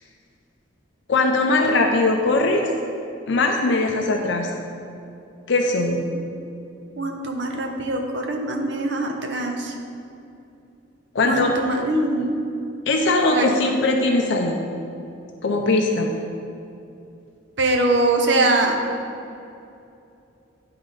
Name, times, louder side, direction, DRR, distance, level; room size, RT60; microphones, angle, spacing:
voice 1, 1.1-2.6 3.3-4.5 5.5-6.0 11.1-11.6 12.9-14.6 15.4-16.1, left 2 dB, 60° left, 2 dB, 0.5 m, -20 dB
voice 2, 7.0-9.7 11.2-12.4 13.3-13.5 17.6-18.8, right 2 dB, 60° right, 2 dB, 0.7 m, -22 dB
9.8 x 3.8 x 3.9 m, 2.7 s
head